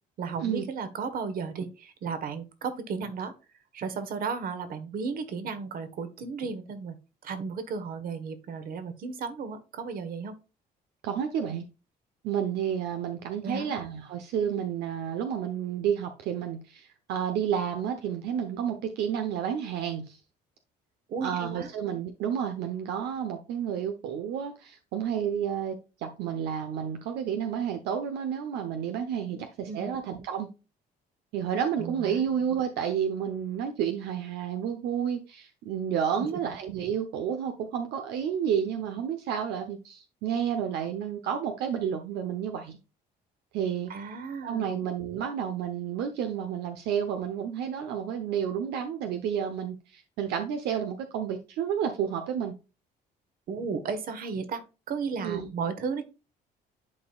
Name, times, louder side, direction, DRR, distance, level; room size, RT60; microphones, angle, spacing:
voice 1, 0.2-3.3 3.7-7.0 7.2-10.3 13.4-13.7 21.1-21.7 29.3-30.0 31.8-32.2 43.9-44.8 53.5-54.6 54.9-56.0, right 5 dB, 60° right, 10 dB, 1.5 m, -34 dB
voice 2, 11.0-11.6 12.2-20.2 21.2-30.5 31.3-42.8 43.5-43.9 44.4-52.5 55.2-55.5, right 8 dB, 80° right, 6 dB, 1.0 m, -30 dB
11.0 x 4.4 x 2.4 m, 0.30 s
cardioid pair, 110°, 17 cm